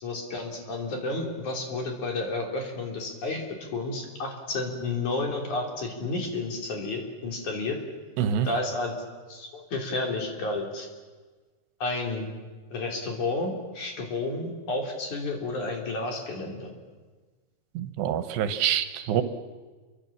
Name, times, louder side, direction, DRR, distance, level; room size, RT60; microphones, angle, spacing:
voice 1, 0.0-7.8 8.4-8.9 9.3-10.9 11.8-12.3 12.7-16.7, left 2 dB, 50° left, 2 dB, 4.6 m, -31 dB
voice 2, 8.2-8.5 17.7-19.2, right 9 dB, 85° right, 10 dB, 3.4 m, -26 dB
28.0 x 24.5 x 7.4 m, 1.4 s
omnidirectional pair, 4.8 m